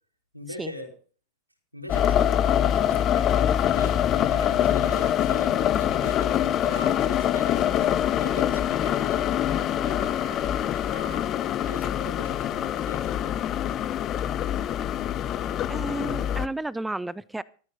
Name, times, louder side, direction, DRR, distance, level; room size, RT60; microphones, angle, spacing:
voice 1, 0.3-0.9 1.7-11.3 11.6-13.5, left 1 dB, 85° right, 2 dB, 4.1 m, -41 dB
sound 1, 1.9-16.5, left 10 dB, 30° left, 0.8 m, -24 dB
sound 2, 3.3-9.6, left 6 dB, 50° left, 4.6 m, -42 dB
voice 2, 14.8-15.2 15.7-17.4, right 2 dB, 5° right, 20 dB, 0.6 m, -33 dB
14.5 x 14.0 x 4.0 m, 0.40 s
figure-of-eight pair, 90°, 0 cm